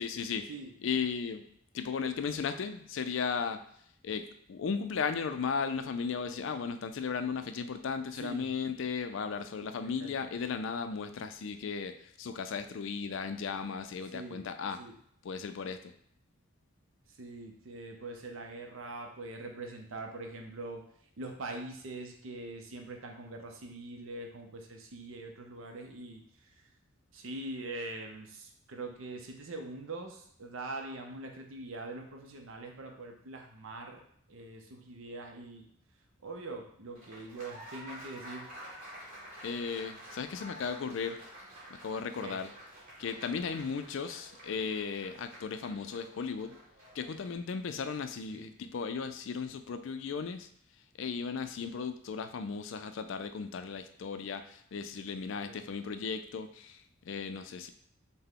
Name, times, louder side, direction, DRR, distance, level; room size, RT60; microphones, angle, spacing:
voice 1, 0.0-0.4 0.8-1.4 1.7-3.6 4.0-14.8 15.2-15.8 39.4-41.2 41.7-42.5 43.0-46.6 46.9-50.5 51.0-57.7, left 5 dB, 60° left, 9 dB, 0.4 m, -36 dB
voice 2, 9.8-10.2 14.1-14.4 14.8-15.0 17.1-20.9 21.2-26.2 26.6-26.7 27.1-34.0 34.3-35.7 36.2-38.5 42.2-42.4 48.3-48.5 55.3-55.6, right 2 dB, 70° right, 3 dB, 0.6 m, -43 dB
Applause, 36.9-47.3, equal, 40° right, 1.4 m, -50 dB
5.6 x 2.1 x 3.6 m, 0.67 s
head